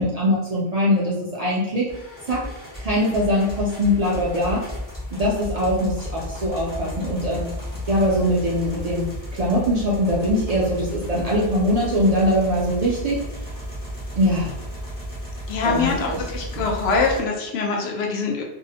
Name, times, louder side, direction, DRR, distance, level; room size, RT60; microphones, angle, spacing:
voice 1, 0.0-1.9 2.3-2.5 2.8-4.7 5.2-7.5 7.9-13.2 14.2-14.5 15.6-16.2, equal, 55° right, -5 dB, 0.4 m, -22 dB
sound 1, 1.9-17.2, equal, 25° left, 0.5 m, -33 dB
voice 2, 15.5-18.4, left 4 dB, 80° left, 1 dB, 0.8 m, -24 dB
2.6 x 2.0 x 2.7 m, 0.97 s
omnidirectional pair, 1.1 m